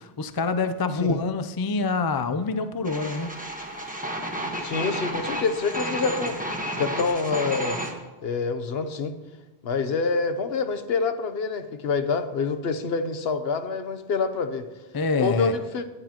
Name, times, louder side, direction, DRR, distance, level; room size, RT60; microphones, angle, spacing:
voice 1, 0.0-3.3 14.9-15.5, left 4 dB, 35° left, 0.4 m, -26 dB
sound 1, 2.8-7.9, equal, 10° right, 1.2 m, -31 dB
voice 2, 4.6-6.4 6.8-7.8 8.2-9.1 9.6-14.7 15.2-15.8, left 4 dB, 70° left, 1.0 m, -26 dB
18.0 x 9.8 x 3.0 m
omnidirectional pair, 1.1 m